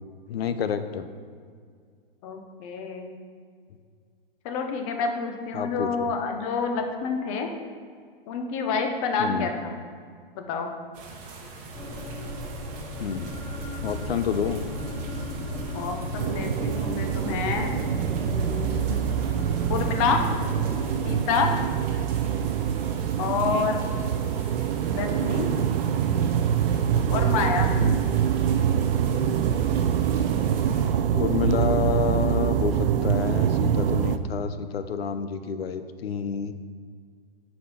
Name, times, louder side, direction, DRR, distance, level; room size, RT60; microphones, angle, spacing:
voice 1, 0.3-1.1 5.5-6.1 9.2-9.5 13.0-13.4 13.8-14.7 22.4-22.5 23.4-23.7 27.7-28.1 31.1-36.5, left 7 dB, 90° left, 10 dB, 0.6 m, -29 dB
voice 2, 2.2-3.2 4.4-7.5 8.3-9.7 10.3-10.7 15.7-17.7 18.0-19.0 19.7-20.2 21.0-21.5 23.2-23.8 24.8-25.5 27.1-27.7, left 5 dB, 35° left, 4 dB, 0.8 m, -28 dB
sound 1, 10.9-30.9, right 3 dB, 25° right, 1.0 m, -42 dB
sound 2, 11.7-21.2, left 1 dB, 10° left, 0.7 m, -34 dB
sound 3, 16.2-34.2, right 9 dB, 65° right, 0.5 m, -25 dB
7.2 x 4.5 x 4.3 m, 2.1 s
hypercardioid pair, 140°, 30 cm